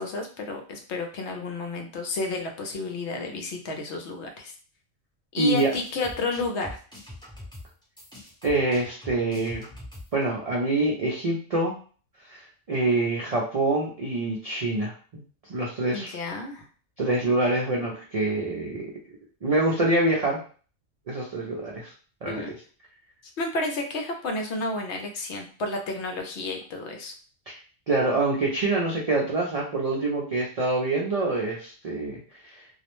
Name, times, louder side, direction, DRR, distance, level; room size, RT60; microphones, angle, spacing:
voice 1, 0.0-4.5 5.3-6.8 15.9-16.7 22.3-22.5 23.4-27.1, left 2 dB, 70° left, 4 dB, 0.8 m, -31 dB
sound 1, 5.4-10.2, left 1 dB, 5° left, 0.7 m, -43 dB
voice 2, 5.4-5.7 8.4-9.7 10.1-11.8 12.3-12.4 12.7-15.2 15.5-16.2 17.0-18.9 19.4-20.4 21.1-21.9 22.2-22.5 27.9-32.2, right 2 dB, 65° right, -3 dB, 0.3 m, -25 dB
2.4 x 2.0 x 2.9 m, 0.40 s
omnidirectional pair, 1.3 m